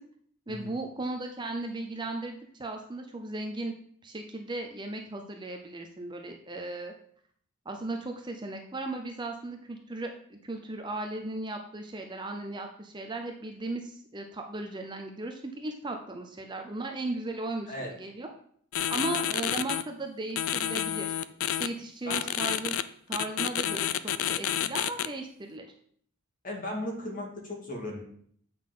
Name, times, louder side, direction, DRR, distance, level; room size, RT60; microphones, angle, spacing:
voice 1, 0.5-3.7 4.0-6.9 7.7-18.3 18.9-21.1 21.6-22.8 23.1-25.7, right 2 dB, 20° right, 3 dB, 0.5 m, -36 dB
sound 1, 18.7-19.8 20.4-21.7 22.1-22.8 23.1-25.1, left 10 dB, 75° left, 0.4 m, -29 dB
voice 2, 26.4-28.0, left 1 dB, 40° left, -1 dB, 2.0 m, -36 dB
8.2 x 5.7 x 3.8 m, 0.62 s
head